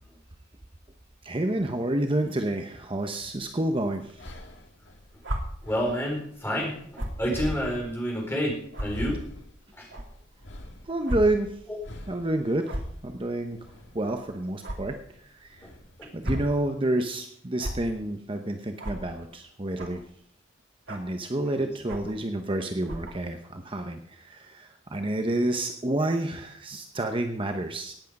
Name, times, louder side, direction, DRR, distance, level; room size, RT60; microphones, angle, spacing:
voice 1, 1.2-4.3 10.9-11.5 12.1-12.8 13.0-13.6 13.9-15.7 16.1-20.0 20.9-27.9, right 1 dB, 25° right, 5 dB, 0.9 m, -29 dB
sound 1, 3.3-16.4, left 1 dB, 65° left, 1.8 m, -44 dB
sound 2, 5.2-5.4 6.9-7.2 7.9-8.0 8.7-8.9 9.9-10.0 11.0-11.2 11.5-11.7 12.6-12.9 14.6-14.8 16.0-16.5 17.6-17.7 18.8-19.0 19.8-20.0 20.9-21.1 21.9-22.1 22.8-23.1, right 1 dB, 75° right, 2.7 m, -32 dB
voice 2, 5.6-9.2 9.8-9.9 16.0-16.1 21.5-21.7, equal, 10° left, -1 dB, 4.7 m, -29 dB
18.0 x 8.4 x 5.4 m, 0.67 s
head